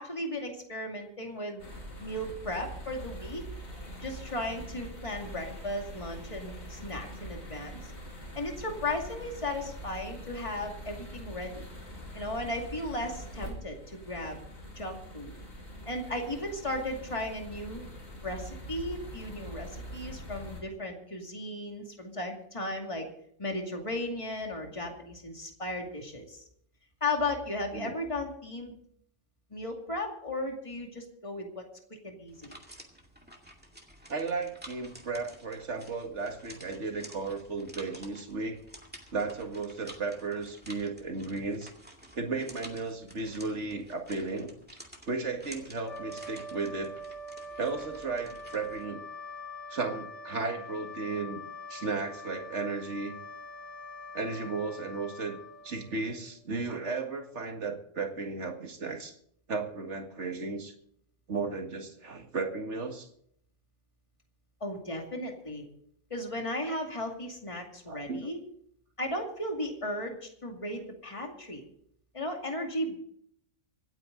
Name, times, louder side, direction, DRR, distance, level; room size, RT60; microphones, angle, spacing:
voice 1, 0.0-1.6 2.0-3.4 4.0-7.8 8.3-11.7 12.1-14.4 14.8-15.3 15.9-17.9 18.2-23.0 23.4-26.4 27.0-28.8 29.5-31.7 32.0-32.5 64.6-65.7 66.1-68.4 69.0-71.6 72.1-73.0, left 1 dB, 25° left, 2 dB, 2.4 m, -35 dB
sound 1, 1.6-20.6, equal, 90° left, 4.3 m, -44 dB
sound 2, 32.3-48.9, equal, 5° right, 2.1 m, -51 dB
voice 2, 34.1-38.6 39.1-41.7 42.1-44.5 45.1-46.9 47.6-49.0 49.7-51.4 51.7-53.2 54.1-55.4 55.6-59.2 59.5-60.7 61.3-63.1 67.9-68.3, right 4 dB, 60° right, 4 dB, 2.2 m, -34 dB
sound 3, 45.8-56.4, left 1 dB, 65° left, 1.9 m, -44 dB
25.5 x 9.1 x 3.9 m, 0.69 s
omnidirectional pair, 1.3 m